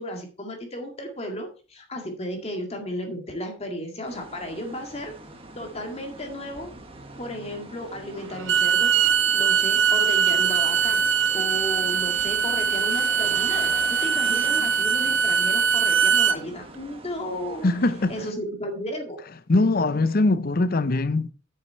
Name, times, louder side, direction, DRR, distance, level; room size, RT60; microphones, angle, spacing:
voice 1, 0.0-5.1 5.6-6.7 7.2-8.9 9.3-11.0 11.3-13.7 14.0-17.7 18.1-19.2, equal, 30° left, 2.0 m, -34 dB
sound 1, 4.0-18.3, right 2 dB, 30° right, 1.5 m, -43 dB
Bowed string instrument, 8.3-16.4, right 7 dB, 70° right, 0.7 m, -22 dB
voice 2, 17.6-18.4 19.5-21.3, left 2 dB, 50° left, 0.6 m, -22 dB
9.3 x 6.6 x 4.5 m
head